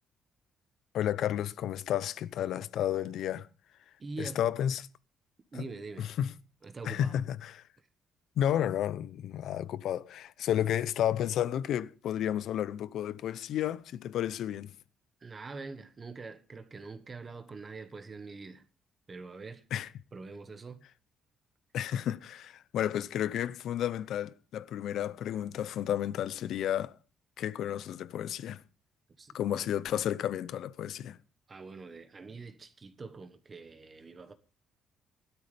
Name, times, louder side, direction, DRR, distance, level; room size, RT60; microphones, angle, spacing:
voice 1, 0.9-3.5 4.2-4.9 5.6-5.7 6.0-6.3 6.8-7.6 8.4-14.7 19.7-19.9 21.7-27.0 27.4-28.6 29.3-31.2, left 10 dB, 70° left, 0.7 m, -32 dB
voice 2, 4.0-4.5 5.5-6.1 6.6-7.2 15.2-18.6 19.1-19.6 20.1-20.9 29.2-29.6 31.5-34.3, right 4 dB, 30° right, 1.3 m, -44 dB
17.0 x 12.5 x 3.4 m
cardioid pair, 125°, 0 cm